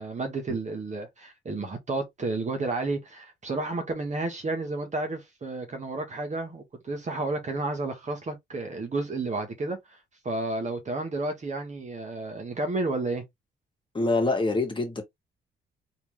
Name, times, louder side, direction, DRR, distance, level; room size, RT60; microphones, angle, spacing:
voice 1, 0.0-9.8 10.2-13.2, right 2 dB, 35° right, 1.5 m, -31 dB
voice 2, 13.9-15.0, left 2 dB, 25° left, 1.9 m, -25 dB
3.5 x 3.0 x 3.1 m
cardioid pair, 90°, 20 cm